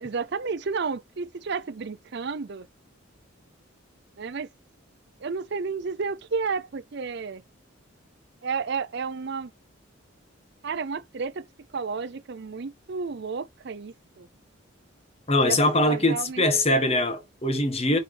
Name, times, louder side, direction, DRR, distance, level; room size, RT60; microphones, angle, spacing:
voice 1, 0.0-2.7 4.2-4.5 5.2-7.4 8.4-9.5 10.6-11.4 11.7-14.3 15.5-15.6 15.8-16.8, right 5 dB, 55° right, 0.5 m, -32 dB
voice 2, 15.3-18.0, left 1 dB, 30° left, 1.4 m, -22 dB
6.5 x 4.7 x 3.4 m
head